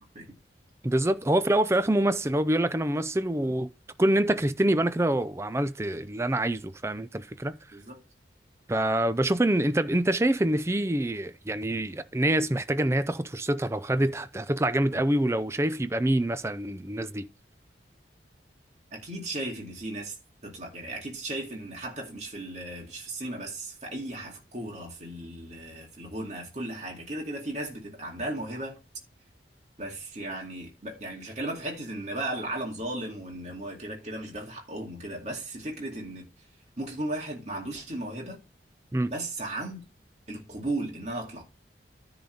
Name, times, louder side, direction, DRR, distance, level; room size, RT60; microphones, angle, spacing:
voice 1, 0.8-3.7 4.0-7.6 8.7-17.3 38.9-39.1, right 1 dB, 15° right, 0.5 m, -26 dB
voice 2, 18.9-20.2 20.4-28.8 29.8-36.3 36.8-38.4 39.1-39.8 40.3-41.4, right 1 dB, 40° right, 2.3 m, -36 dB
10.0 x 4.0 x 6.5 m
head